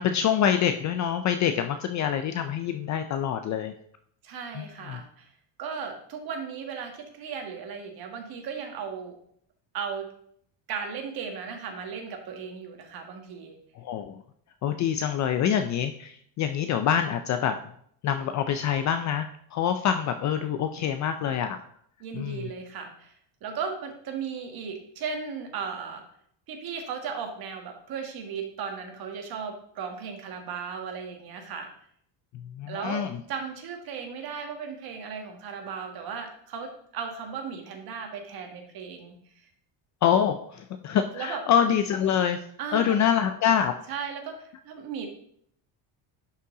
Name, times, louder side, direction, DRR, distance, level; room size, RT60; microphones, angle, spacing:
voice 1, 0.0-3.7 4.5-5.0 13.8-14.2 14.6-17.6 18.0-21.6 22.1-22.5 32.3-33.2 40.0-42.4 42.7-43.7, left 8 dB, 40° left, 8 dB, 0.4 m, -26 dB
voice 2, 4.2-5.3 5.6-9.2 9.7-10.1 10.7-13.6 22.0-23.1 23.4-26.0 26.5-31.7 32.7-33.0 33.3-39.2 41.1-41.4 42.6-43.0 43.9-45.1, right 6 dB, 50° right, 3 dB, 1.8 m, -36 dB
11.0 x 5.7 x 3.7 m, 0.66 s
cardioid pair, 165°, 46 cm